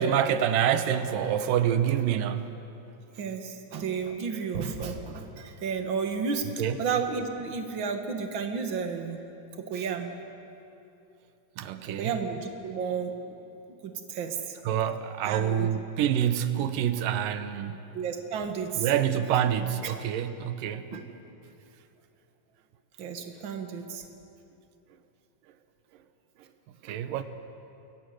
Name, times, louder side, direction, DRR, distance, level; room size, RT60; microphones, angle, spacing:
voice 1, 0.0-2.5 6.6-6.8 11.6-12.1 14.7-17.8 18.8-20.9 26.8-27.2, right 9 dB, 80° right, 2.7 m, -27 dB
voice 2, 3.1-6.5 6.8-9.2 9.6-10.1 11.8-13.3 13.8-14.6 15.2-15.7 17.9-18.9 19.8-19.9 20.9-21.0 23.0-24.0 26.9-27.0, right 6 dB, 45° right, 2.1 m, -32 dB
29.0 x 21.5 x 7.9 m
omnidirectional pair, 3.9 m